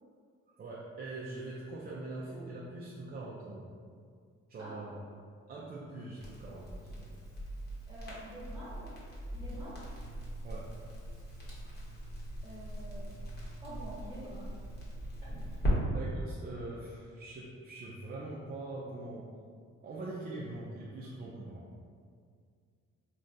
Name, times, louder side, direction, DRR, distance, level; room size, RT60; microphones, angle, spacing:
voice 1, 0.6-3.7 4.5-5.0 5.5-7.1 10.4-10.7 15.9-19.3 19.8-21.6, right 2 dB, 30° right, -6 dB, 0.4 m, -43 dB
Crackle, 6.2-15.7, equal, 35° left, 1.0 m, -39 dB
voice 2, 7.9-8.9 9.3-9.8 12.4-13.1 13.6-14.5 15.6-15.9, right 1 dB, 5° right, -10 dB, 1.1 m, -47 dB
3.4 x 2.3 x 2.6 m, 2.1 s
cardioid pair, 90°, 30 cm